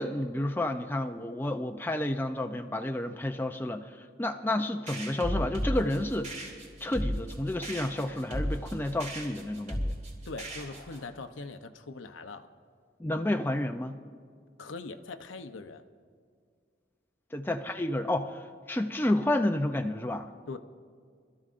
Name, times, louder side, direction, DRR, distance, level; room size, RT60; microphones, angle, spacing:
voice 1, 0.0-6.4 6.8-9.9 13.0-14.0 17.3-20.3, left 1 dB, 10° left, 5 dB, 0.4 m, -30 dB
sound 1, 4.9-11.1, equal, 40° right, 2.7 m, -35 dB
voice 2, 10.3-12.5 14.6-15.8 20.5-20.6, left 3 dB, 85° left, 8 dB, 0.7 m, -41 dB
25.0 x 13.5 x 2.5 m, 2.1 s
head